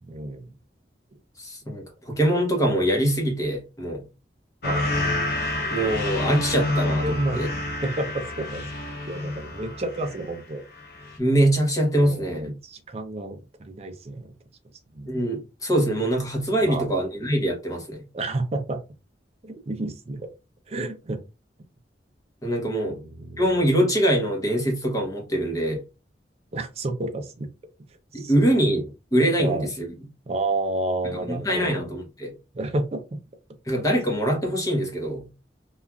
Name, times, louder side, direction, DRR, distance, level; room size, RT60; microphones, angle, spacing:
voice 1, 0.0-0.5 4.6-5.1 7.0-7.4 7.8-8.6 9.1-10.7 11.9-14.3 14.9-15.1 16.6-16.9 18.1-18.8 19.4-20.3 20.7-21.2 22.9-23.4 26.5-27.5 28.1-28.3 28.7-28.8 29.4-29.7 30.3-31.8 32.5-33.2, right 2 dB, 35° right, 0.5 m, -30 dB
voice 2, 1.4-4.1 5.7-7.5 11.2-12.5 15.1-18.1 22.4-23.0 23.4-25.8 28.1-28.9 29.1-29.9 31.3-32.3 33.7-35.3, right 1 dB, 20° left, 0.8 m, -23 dB
sound 1, 4.6-10.4 10.7-11.2, left 1 dB, 60° left, 0.5 m, -28 dB
3.0 x 2.3 x 2.3 m
head